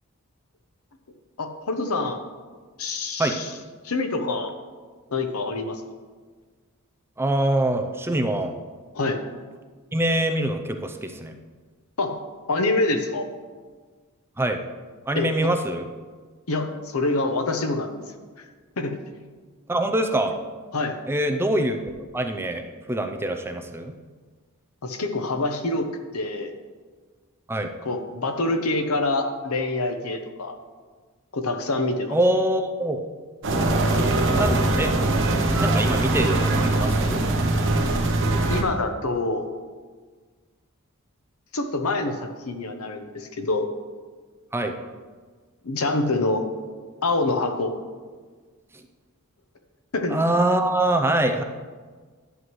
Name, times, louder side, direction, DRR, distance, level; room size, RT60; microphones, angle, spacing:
voice 1, 1.4-2.2 2.8-3.5 3.8-4.5 5.1-5.8 8.9-9.2 12.0-12.2 12.5-13.3 15.1-15.5 16.5-18.0 18.4-18.5 18.8-19.0 20.7-21.0 24.8-25.9 26.1-26.5 27.8-30.6 31.3-32.2 38.5-39.5 41.5-43.7 45.6-46.5 47.0-47.7 49.9-50.2, left 2 dB, 75° left, 7 dB, 0.8 m, -26 dB
voice 2, 7.2-8.5 9.9-11.3 14.4-14.6 15.1-15.9 19.7-20.3 21.1-21.8 22.1-22.6 22.9-23.9 27.5-27.7 32.1-33.0 34.3-34.9 35.6-37.2 44.5-44.8 50.1-51.4, right 1 dB, 10° right, 5 dB, 0.5 m, -24 dB
sound 1, 33.4-38.6, right 2 dB, 60° right, 1.0 m, -22 dB
11.0 x 7.7 x 3.1 m, 1.5 s
head